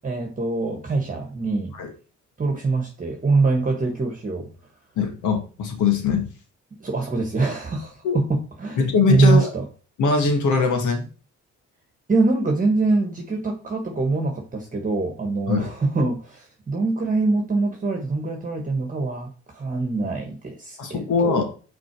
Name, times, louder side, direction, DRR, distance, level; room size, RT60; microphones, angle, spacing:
voice 1, 0.0-1.7 2.4-4.5 6.8-8.8 9.1-9.6 12.1-21.4, right 3 dB, 25° right, 1.5 m, -23 dB
voice 2, 5.0-6.3 8.0-8.2 8.8-9.5 10.0-11.1 15.5-15.7 20.8-21.4, left 5 dB, 80° left, 2.0 m, -21 dB
6.1 x 4.3 x 4.7 m
cardioid pair, 90°, 30 cm